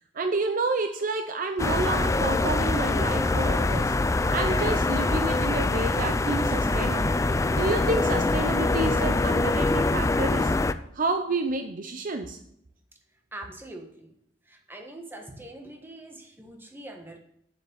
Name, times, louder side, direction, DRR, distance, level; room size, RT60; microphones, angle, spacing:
voice 1, 0.1-3.9 4.3-7.2 7.5-10.5 10.9-12.4, right 2 dB, 45° right, 7 dB, 0.6 m, -29 dB
sound 1, 1.6-10.7, left 2 dB, 15° left, 0.4 m, -24 dB
voice 2, 13.3-14.1 14.4-17.2, right 1 dB, 10° right, 2 dB, 1.5 m, -43 dB
7.5 x 7.1 x 7.8 m, 0.73 s
head